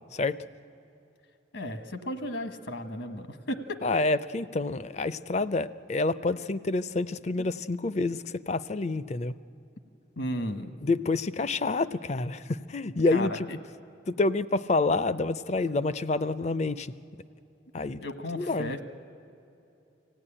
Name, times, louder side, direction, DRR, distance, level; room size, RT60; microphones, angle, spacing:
voice 1, 1.5-3.8 7.4-7.5 10.2-10.7 13.1-13.4 18.0-18.8, left 1 dB, 75° left, 8 dB, 1.3 m, -34 dB
voice 2, 3.8-9.4 10.8-13.5 14.1-16.9 17.7-18.0 18.3-18.7, left 3 dB, 35° left, 15 dB, 0.5 m, -28 dB
24.5 x 16.5 x 9.9 m, 2.8 s
head